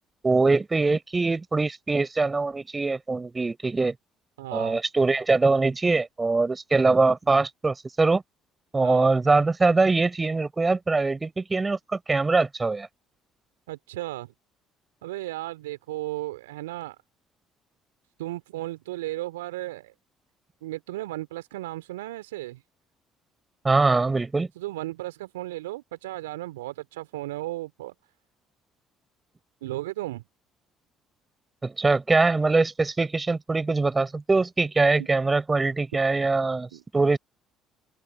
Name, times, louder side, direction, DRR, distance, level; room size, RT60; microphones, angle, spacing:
voice 1, 0.2-3.9 4.5-8.2 8.7-12.9 23.6-24.5 31.6-36.7 36.9-37.2, right 3 dB, 25° right, 6.4 m, -23 dB
voice 2, 4.4-4.8 8.8-9.1 13.7-14.3 15.0-16.9 18.2-19.9 20.6-22.6 24.5-27.9 29.6-30.2 35.0-35.1 36.7-36.8, right 17 dB, 75° right, 3.3 m, -35 dB
figure-of-eight pair, 50°, 0 cm